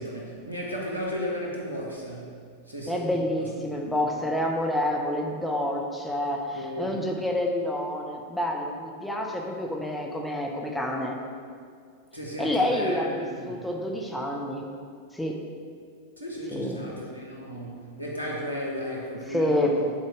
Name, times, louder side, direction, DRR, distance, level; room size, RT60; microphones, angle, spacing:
voice 1, 0.0-2.4 2.7-3.1 3.5-4.0 6.5-7.0 12.1-13.7 16.2-19.9, equal, 85° right, -3 dB, 1.4 m, -35 dB
voice 2, 2.9-11.2 12.4-14.7 15.1-15.4 16.5-16.8 19.3-19.8, left 1 dB, 5° left, 0 dB, 0.9 m, -28 dB
9.5 x 4.5 x 4.8 m, 2.1 s
figure-of-eight pair, 90°, 0 cm